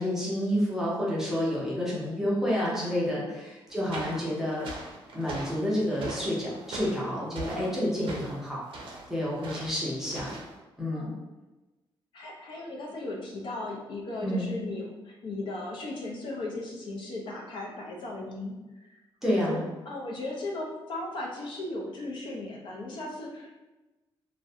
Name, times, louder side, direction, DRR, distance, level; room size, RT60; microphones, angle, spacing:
voice 1, 0.0-4.7 5.1-8.6 9.1-10.3 10.8-11.1 14.2-14.5 19.2-19.6, equal, 5° right, -7 dB, 0.5 m, -29 dB
sound 1, 3.7-10.6, right 2 dB, 65° right, 0.5 m, -42 dB
voice 2, 12.1-19.0 19.3-23.6, left 2 dB, 60° left, -2 dB, 0.5 m, -37 dB
2.4 x 2.1 x 2.6 m, 1.1 s
wide cardioid pair, 180°, 9 cm